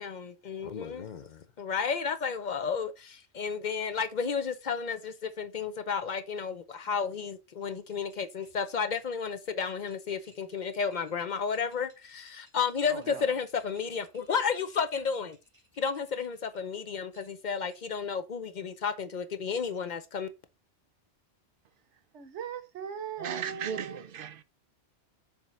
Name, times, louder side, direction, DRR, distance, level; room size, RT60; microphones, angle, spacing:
voice 1, 0.0-15.4 15.8-20.3, left 6 dB, 50° left, 0.7 m, -32 dB
sound 1, 7.6-16.7 17.1-18.1, right 1 dB, 25° right, 3.4 m, -64 dB
voice 2, 12.9-13.2 22.1-24.0, right 7 dB, 90° right, 1.2 m, -39 dB
voice 3, 23.2-24.4, right 8 dB, 60° right, 0.7 m, -36 dB
7.2 x 3.6 x 4.2 m
omnidirectional pair, 1.2 m